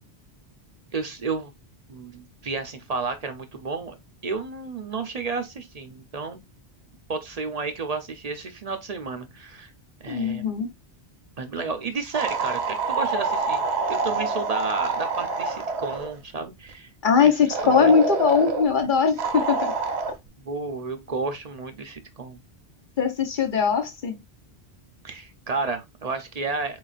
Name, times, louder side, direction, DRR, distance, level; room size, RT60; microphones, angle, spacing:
voice 1, 0.9-1.5 1.9-4.0 4.2-6.4 7.1-9.7 10.0-10.4 11.4-16.9 17.2-17.3 17.6-17.9 20.4-22.4 25.0-26.8, right 4 dB, 45° right, 0.6 m, -31 dB
voice 2, 10.1-10.7 17.0-19.7 23.0-24.2, left 6 dB, 55° left, 0.9 m, -21 dB
sound 1, 12.1-16.1 17.5-18.7 19.2-20.1, right 4 dB, 85° right, 1.0 m, -26 dB
4.0 x 3.9 x 2.4 m
omnidirectional pair, 1.1 m